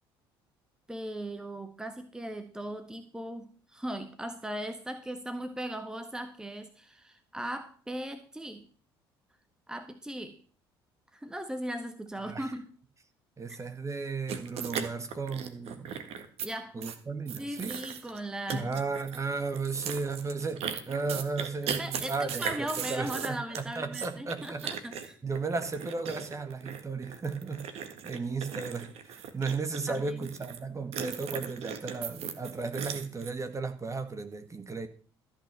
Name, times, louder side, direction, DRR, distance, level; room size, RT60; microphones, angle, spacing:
voice 1, 0.9-8.7 9.7-10.4 11.1-12.7 16.4-16.9 17.4-18.8 21.6-25.2 29.9-30.3, right 1 dB, 5° right, 1.5 m, -38 dB
voice 2, 13.4-16.0 16.7-17.7 18.6-22.4 22.9-23.4 23.8-24.6 25.2-27.7 28.0-34.9, right 4 dB, 25° right, 1.9 m, -34 dB
sound 1, 14.3-16.5 16.8-17.0 17.3-18.2 18.5-19.2 19.5-30.6 30.9-33.3, right 7 dB, 55° right, 1.8 m, -37 dB
14.0 x 5.9 x 7.7 m
figure-of-eight pair, 55°, 13 cm